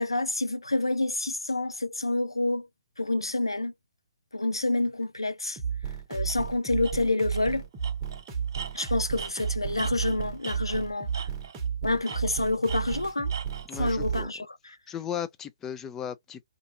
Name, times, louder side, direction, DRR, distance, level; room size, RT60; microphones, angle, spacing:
voice 1, 0.0-2.7 3.0-3.7 4.3-5.6 6.1-7.6 8.7-11.1 11.8-13.3 13.8-14.5, left 2 dB, 85° left, 0.3 m, -28 dB
sound 1, 5.6-14.3, right 7 dB, 20° right, 0.9 m, -32 dB
Tools, 6.3-6.4 6.8-6.9 7.3-7.5 7.8-10.9 11.1-11.7 12.0-13.7, right 6 dB, 55° right, 0.5 m, -41 dB
voice 2, 13.7-14.5 14.9-16.4, left 9 dB, 15° left, 0.4 m, -36 dB
2.5 x 2.5 x 2.4 m
figure-of-eight pair, 130°, 2 cm